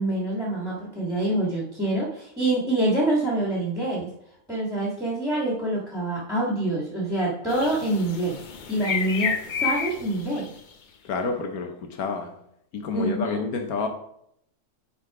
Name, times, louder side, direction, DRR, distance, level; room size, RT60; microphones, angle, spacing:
voice 1, 0.0-4.1 4.5-8.4 8.7-10.5 12.9-13.4, right 1 dB, ahead, 1.5 m, -26 dB
sound 1, 7.5-10.7, left 6 dB, 50° left, 0.6 m, -30 dB
voice 2, 11.0-12.4 12.7-13.9, left 4 dB, 85° left, 1.3 m, -29 dB
8.2 x 3.9 x 4.8 m
omnidirectional pair, 1.5 m